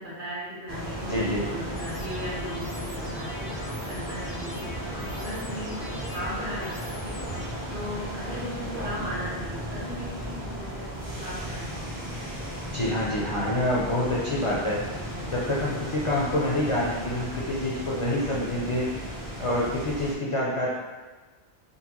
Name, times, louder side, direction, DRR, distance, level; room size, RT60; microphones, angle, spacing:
voice 1, 0.0-12.1, equal, 55° right, -7 dB, 1.2 m, -37 dB
sound 1, 0.7-20.2, equal, 35° right, 0.3 m, -35 dB
voice 2, 1.0-1.4 12.7-14.8 15.2-18.9 19.4-20.7, left 1 dB, 50° left, -5 dB, 0.4 m, -27 dB
sound 2, 1.7-7.5, left 2 dB, 90° left, 1.0 m, -43 dB
3.8 x 2.2 x 2.9 m, 1.3 s
omnidirectional pair, 1.1 m